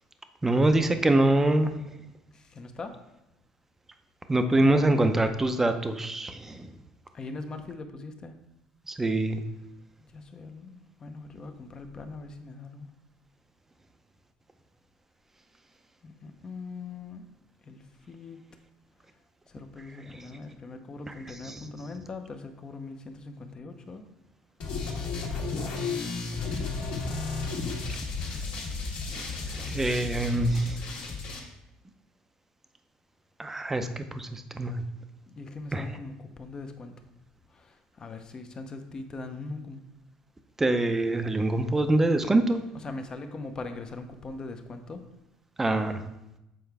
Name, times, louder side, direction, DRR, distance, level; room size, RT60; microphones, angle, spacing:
voice 1, 0.4-1.7 4.3-6.7 8.9-9.4 20.0-20.2 21.1-21.6 29.1-30.8 33.4-34.8 35.7-35.9 40.6-42.6 45.6-46.0, right 2 dB, 15° right, 8 dB, 0.6 m, -25 dB
voice 2, 2.3-2.9 7.1-8.3 10.1-12.9 16.0-17.3 17.7-18.4 19.5-24.0 25.8-27.1 35.3-36.9 37.5-39.8 42.8-45.0, left 3 dB, 30° left, 7 dB, 0.7 m, -41 dB
sound 1, 24.6-31.4, left 4 dB, 65° left, 1.7 m, -33 dB
7.7 x 4.5 x 3.4 m, 0.89 s
cardioid pair, 115°, 3 cm